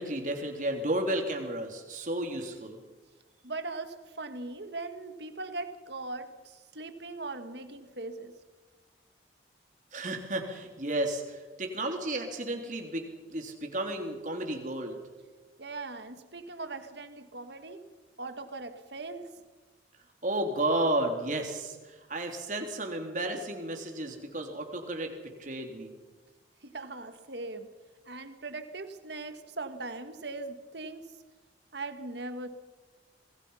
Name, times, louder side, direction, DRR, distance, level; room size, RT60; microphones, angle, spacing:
voice 1, 0.0-2.8 9.9-15.0 20.2-25.1 25.4-26.0, right 1 dB, 40° right, 3.5 m, -32 dB
voice 2, 3.4-8.3 15.6-17.9 18.2-19.4 26.6-27.7 28.0-31.2 31.7-32.5, right 3 dB, 65° right, 1.8 m, -40 dB
27.0 x 20.5 x 5.7 m
head